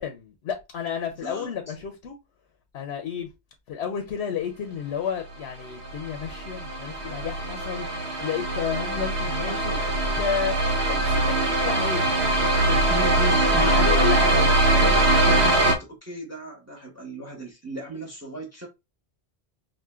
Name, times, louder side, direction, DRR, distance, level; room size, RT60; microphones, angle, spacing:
voice 1, 0.0-2.2 2.7-3.3 3.7-7.9 8.2-12.8 13.6-14.5 15.2-15.5, left 7 dB, 80° left, 0.9 m, -32 dB
voice 2, 1.2-1.7 9.5-9.9 12.7-18.7, right 1 dB, 15° right, 0.9 m, -36 dB
sound 1, 5.8-15.7, right 2 dB, 80° right, 1.1 m, -22 dB
4.9 x 2.5 x 2.3 m
omnidirectional pair, 1.1 m